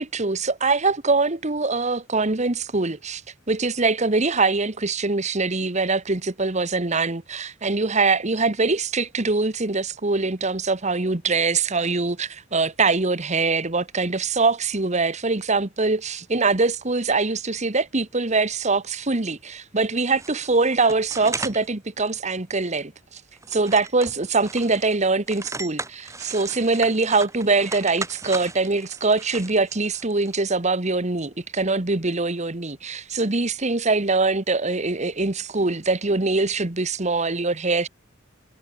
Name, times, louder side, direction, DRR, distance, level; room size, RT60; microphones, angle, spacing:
voice 1, 0.0-3.2 3.5-23.2 23.5-37.9, right 3 dB, 35° right, 1.5 m, -23 dB
sound 1, 20.1-21.7 22.0-22.1 22.7-22.8 23.2-25.0 25.3-30.3, right 3 dB, 15° right, 3.8 m, -36 dB
head